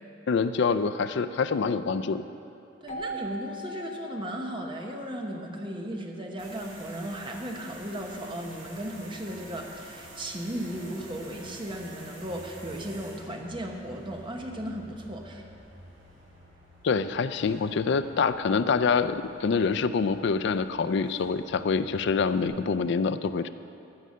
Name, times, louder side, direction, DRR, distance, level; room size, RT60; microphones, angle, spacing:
voice 1, 0.3-2.2 16.8-23.5, left 5 dB, 65° left, 12 dB, 0.4 m, -26 dB
voice 2, 2.8-15.5, right 1 dB, 25° right, 2 dB, 1.0 m, -36 dB
Keyboard (musical), 2.9-5.5, right 1 dB, 40° left, 1.1 m, -40 dB
sound 1, 6.4-22.5, right 1 dB, 75° right, 2.9 m, -49 dB
14.5 x 5.5 x 6.4 m, 2.8 s
head